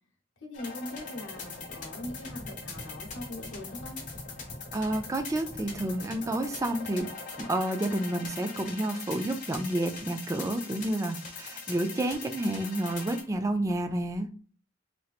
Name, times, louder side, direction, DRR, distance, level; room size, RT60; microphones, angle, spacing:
voice 1, 0.4-4.0, left 1 dB, 75° left, 1 dB, 0.9 m, -41 dB
sound 1, 0.5-13.2, left 4 dB, 40° left, 0.9 m, -41 dB
voice 2, 4.7-7.1 7.5-14.3, right 1 dB, 15° right, 6 dB, 0.3 m, -30 dB
3.2 x 2.8 x 2.4 m, 0.41 s
head